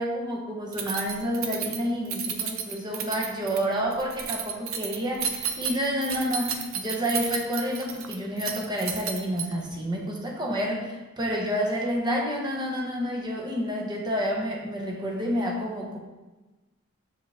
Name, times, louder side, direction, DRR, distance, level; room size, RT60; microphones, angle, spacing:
voice 1, 0.0-16.0, equal, 20° right, -1 dB, 0.9 m, -29 dB
Keys jangling, 0.7-9.7, right 7 dB, 80° right, 0.6 m, -33 dB
6.4 x 4.9 x 3.4 m, 1.1 s
head